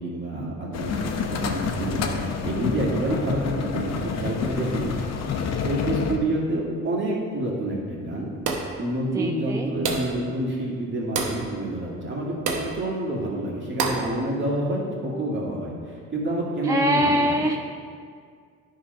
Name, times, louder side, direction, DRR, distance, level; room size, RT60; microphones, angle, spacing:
voice 1, 0.0-4.9 5.6-8.3 8.8-17.5, right 1 dB, 40° right, -4 dB, 2.1 m, -28 dB
sound 1, 0.7-6.2, left 5 dB, 60° left, 0.8 m, -28 dB
sound 2, 8.4-8.8 9.8-10.2 11.1-11.4 12.5-12.7 13.8-14.1, right 4 dB, 90° right, 0.9 m, -27 dB
voice 2, 9.1-9.7 16.7-17.6, equal, 10° right, 3 dB, 0.3 m, -23 dB
10.0 x 3.7 x 5.3 m, 2.1 s
cardioid pair, 90°, 30 cm